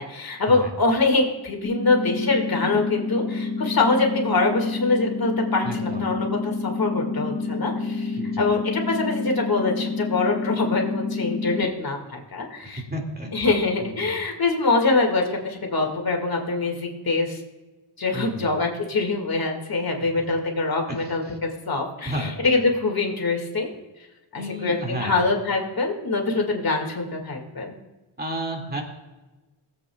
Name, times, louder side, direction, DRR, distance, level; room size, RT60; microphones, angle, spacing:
voice 1, 0.0-12.8 13.3-17.4 18.0-23.7 24.3-27.8, left 3 dB, 50° left, 2 dB, 2.1 m, -24 dB
sound 1, 1.6-11.6, left 3 dB, 35° left, 1.6 m, -28 dB
voice 2, 5.6-6.1 8.2-8.5 12.6-13.3 13.8-14.2 18.1-18.5 20.0-20.1 20.9-21.4 22.0-22.7 24.3-25.2 28.2-28.8, right 1 dB, 20° right, 1 dB, 2.1 m, -32 dB
21.0 x 8.0 x 2.3 m, 1.1 s
wide cardioid pair, 120°, 46 cm